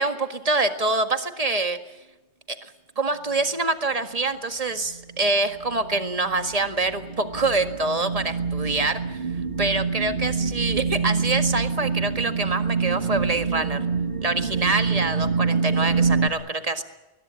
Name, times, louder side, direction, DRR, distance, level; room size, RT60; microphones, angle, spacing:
voice 1, 0.0-1.8 2.5-2.6 3.0-9.3 9.6-13.8 14.2-16.8, right 3 dB, 35° right, 8 dB, 1.8 m, -25 dB
sound 1, 4.9-16.3, right 5 dB, 55° right, 1.9 m, -26 dB
21.5 x 20.5 x 8.7 m, 1.0 s
omnidirectional pair, 1.1 m